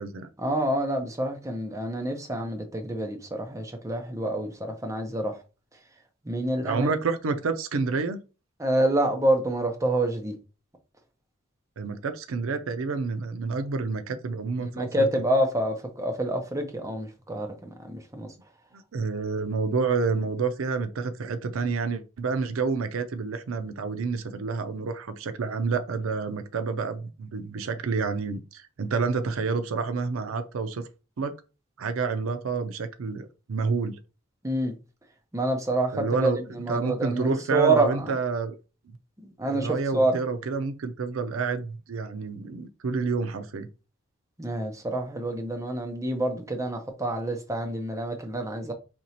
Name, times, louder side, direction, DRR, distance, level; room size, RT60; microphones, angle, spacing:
voice 1, 0.4-5.4 6.3-6.9 8.6-10.3 14.7-18.3 34.4-34.7 35.3-38.1 39.2-40.2 44.4-48.7, right 1 dB, 15° right, 0.6 m, -27 dB
voice 2, 6.6-8.2 11.8-15.1 18.7-30.9 31.2-31.3 31.8-34.0 35.9-38.6 39.4-43.7, right 4 dB, 80° right, 0.5 m, -29 dB
4.4 x 2.9 x 2.8 m
head